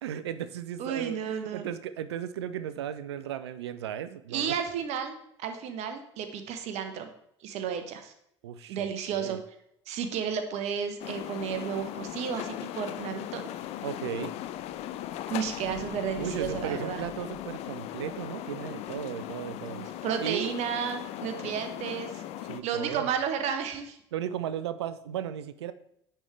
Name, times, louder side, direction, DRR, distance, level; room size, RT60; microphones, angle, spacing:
voice 1, 0.0-4.6 8.4-9.4 13.8-14.3 16.2-19.8 20.2-20.5 21.4-21.5 22.4-23.1 24.1-25.7, right 9 dB, 75° right, 14 dB, 0.4 m, -35 dB
voice 2, 0.8-1.7 4.3-7.1 7.4-8.1 8.7-9.4 9.9-13.5 15.3-17.0 19.7-22.2 22.6-24.0, right 7 dB, 50° right, 7 dB, 0.8 m, -32 dB
sound 1, 11.0-22.6, left 12 dB, 50° left, 0.4 m, -38 dB
9.5 x 3.4 x 3.3 m, 0.75 s
figure-of-eight pair, 60°, 14 cm